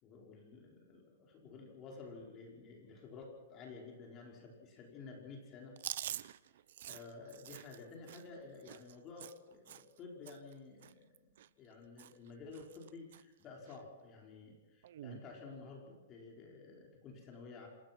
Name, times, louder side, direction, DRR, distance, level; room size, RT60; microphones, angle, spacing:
voice 1, 0.0-5.8 6.8-11.1 11.6-17.7, left 4 dB, 25° left, 0 dB, 5.2 m, -52 dB
Chewing mastication, 5.8-10.0 10.3-10.5 10.8-11.7 12.0-12.3 12.5-13.2 13.7-13.8 14.8-15.2, right 11 dB, 60° right, 0.8 m, -47 dB
27.0 x 18.5 x 6.2 m, 1.1 s
hypercardioid pair, 160°, 0 cm